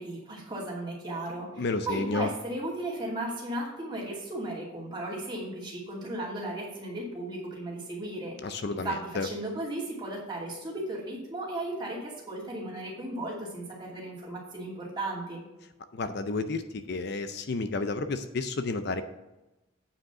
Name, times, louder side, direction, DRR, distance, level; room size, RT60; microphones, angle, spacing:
voice 1, 0.0-15.4, right 1 dB, 20° right, -5 dB, 2.5 m, -36 dB
voice 2, 1.6-2.3 8.4-9.3 15.9-19.0, left 3 dB, 50° left, 10 dB, 0.5 m, -31 dB
8.8 x 5.1 x 5.9 m, 0.99 s
head